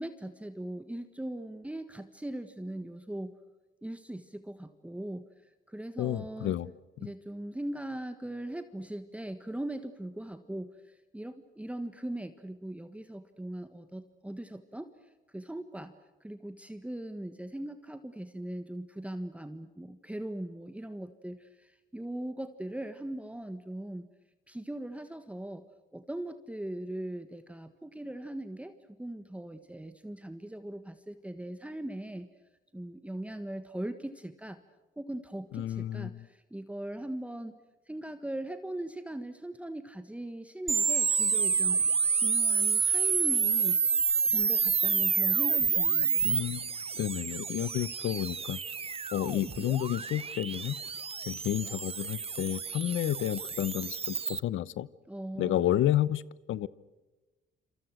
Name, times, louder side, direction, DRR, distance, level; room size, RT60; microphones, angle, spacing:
voice 1, 0.0-3.3 3.8-5.2 5.7-6.6 7.0-14.9 15.3-15.9 16.2-24.1 24.5-25.6 25.9-32.3 32.7-34.6 35.0-37.5 37.9-41.8 42.1-43.8 44.3-46.2 55.1-55.6, right 1 dB, 5° right, 9 dB, 1.5 m, -40 dB
voice 2, 6.0-6.7 7.0-7.1 35.5-36.3 46.2-48.6 49.1-50.8 51.3-54.9 55.4-56.2 56.5-56.7, left 12 dB, 75° left, 19 dB, 0.9 m, -31 dB
sound 1, 40.7-54.4, right 5 dB, 30° right, 0.8 m, -29 dB
27.5 x 27.5 x 6.3 m, 1.2 s
cardioid pair, 90°, 20 cm